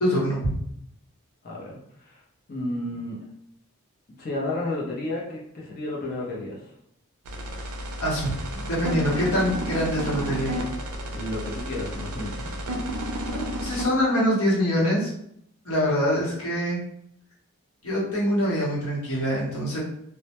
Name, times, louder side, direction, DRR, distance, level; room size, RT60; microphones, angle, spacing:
voice 1, 0.0-0.4 8.0-8.3 8.6-10.5 13.3-15.1 15.6-16.8 17.8-19.8, equal, 75° left, -5 dB, 0.9 m, -24 dB
voice 2, 1.4-2.2 2.5-3.2 4.2-6.7 11.1-12.6, left 1 dB, 40° left, -4 dB, 0.5 m, -32 dB
sound 1, 7.3-13.8, equal, 90° right, 0.4 m, -32 dB
2.1 x 2.1 x 2.8 m, 0.73 s
head